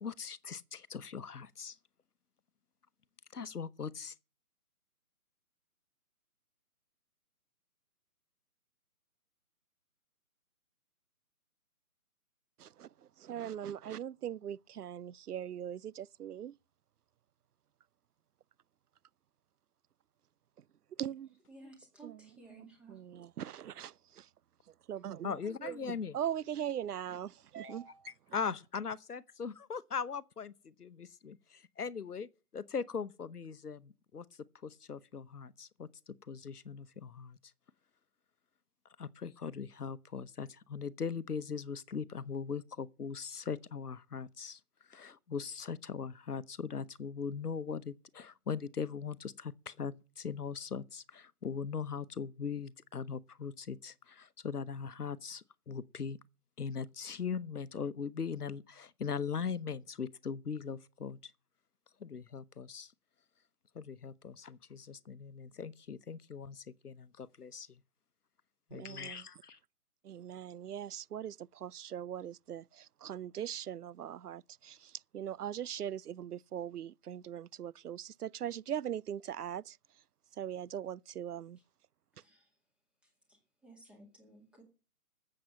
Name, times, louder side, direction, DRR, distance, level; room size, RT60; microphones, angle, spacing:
voice 1, 0.0-1.8 3.3-4.1 25.2-26.2 28.3-34.3 34.6-37.4 39.0-44.6 44.9-56.2 56.6-61.3 62.0-62.9 63.7-67.8 68.7-69.6, left 6 dB, 90° left, 1.0 m, -40 dB
voice 2, 13.2-16.5 21.0-21.3 22.0-24.3 24.9-25.3 25.6-27.8 68.7-69.2 70.0-79.8 80.4-81.6, right 10 dB, 85° right, 0.5 m, -40 dB
voice 3, 21.5-23.0 27.6-28.1 82.2-82.5 83.6-84.6, right 2 dB, ahead, 1.9 m, -55 dB
13.0 x 7.8 x 7.4 m
figure-of-eight pair, 150°, 45 cm